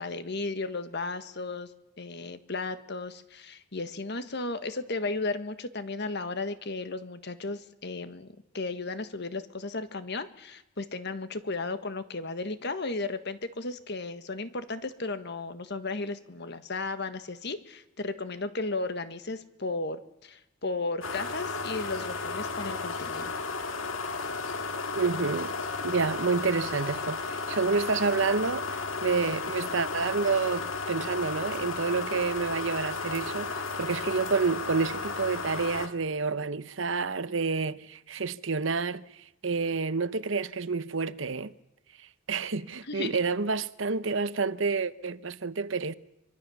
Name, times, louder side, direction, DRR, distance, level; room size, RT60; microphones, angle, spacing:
voice 1, 0.0-1.7 2.0-8.3 8.5-23.3 42.9-43.1, left 3 dB, 55° left, 1.5 m, -34 dB
sound 1, 21.0-35.9, left 4 dB, 75° left, 2.0 m, -34 dB
voice 2, 24.9-25.5 25.8-41.5 42.3-45.9, right 4 dB, 65° right, 0.9 m, -29 dB
25.0 x 23.5 x 7.1 m
head